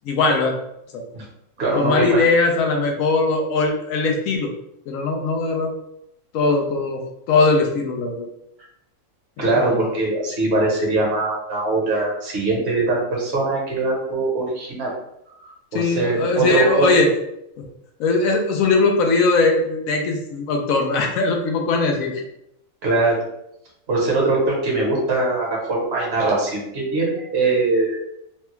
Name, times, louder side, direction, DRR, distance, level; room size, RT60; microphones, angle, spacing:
voice 1, 0.0-0.6 0.9-1.0 1.7-4.5 4.9-5.7 6.3-7.0 7.3-8.3 9.4-9.9 15.7-17.1 18.0-22.2, left 3 dB, 75° left, 3 dB, 1.0 m, -20 dB
voice 2, 1.6-2.2 9.4-14.9 15.4-16.9 22.8-23.2 23.9-28.0, right 2 dB, 50° right, -2 dB, 1.2 m, -21 dB
3.3 x 2.3 x 3.0 m, 0.79 s
omnidirectional pair, 1.5 m